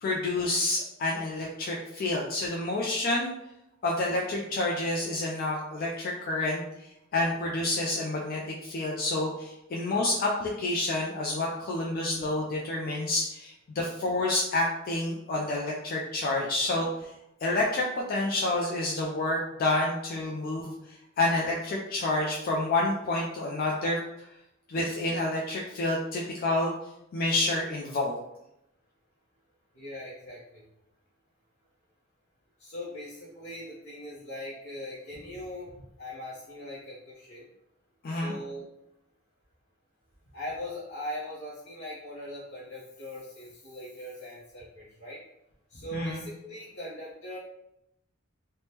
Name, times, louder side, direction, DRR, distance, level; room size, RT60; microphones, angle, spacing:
voice 1, 0.0-3.3 3.8-6.9 7.1-16.9 17.4-20.7 21.2-24.0 24.7-26.7 27.1-28.2 38.0-38.3 45.9-46.2, left 2 dB, 45° left, -2 dB, 0.3 m, -29 dB
voice 2, 29.7-30.6 32.6-37.5 38.1-38.7 40.3-45.2 45.7-47.4, left 1 dB, 85° left, -8 dB, 0.8 m, -40 dB
3.3 x 2.1 x 2.8 m, 0.85 s
head